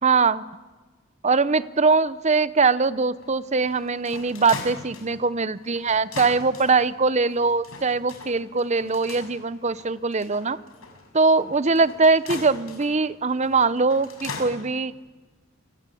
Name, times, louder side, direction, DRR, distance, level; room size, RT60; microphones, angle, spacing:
voice 1, 0.0-0.4 1.2-10.6 11.1-14.9, right 4 dB, 35° right, 16 dB, 0.8 m, -22 dB
sound 1, 3.2-14.5, left 3 dB, 80° left, 6.1 m, -40 dB
29.0 x 24.5 x 8.5 m, 1.3 s
head